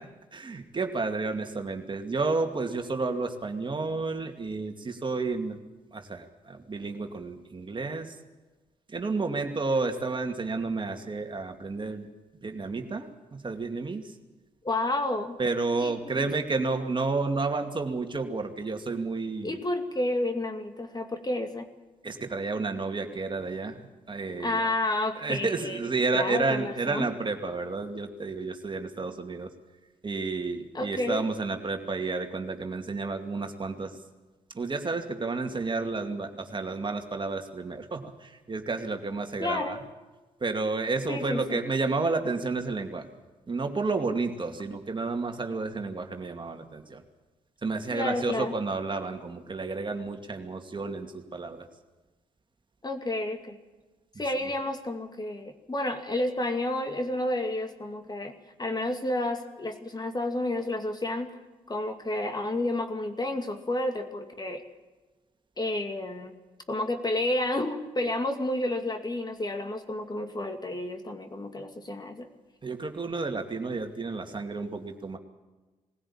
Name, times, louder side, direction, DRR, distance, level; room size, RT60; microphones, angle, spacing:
voice 1, 0.3-5.6 5.9-8.1 8.9-12.1 12.4-14.1 15.4-19.6 22.0-24.7 25.2-29.5 30.0-34.0 34.5-39.8 40.4-43.1 43.5-47.0 47.6-51.7 72.6-75.2, right 3 dB, 35° right, 5 dB, 2.4 m, -31 dB
voice 2, 14.6-15.4 15.8-16.3 19.4-21.7 24.4-25.8 26.1-27.1 30.7-31.3 39.4-39.8 41.1-41.6 47.9-48.5 52.8-53.6 54.2-61.4 61.7-64.6 65.6-66.3 66.7-72.3, left 1 dB, 30° left, 6 dB, 2.4 m, -30 dB
20.5 x 16.0 x 8.7 m, 1.2 s
supercardioid pair, 50°, 14 cm